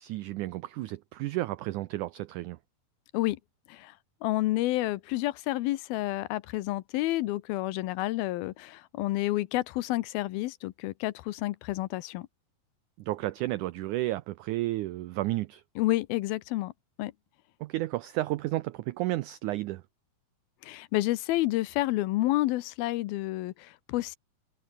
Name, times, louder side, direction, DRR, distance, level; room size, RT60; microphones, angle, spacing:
voice 1, 0.0-2.6 13.0-15.6 17.6-19.8, right 17 dB, 85° right, 1.7 m, -32 dB
voice 2, 4.2-12.3 15.8-16.7 17.0-17.1 20.6-24.2, left 17 dB, 85° left, 2.7 m, -29 dB
omnidirectional pair, 4.3 m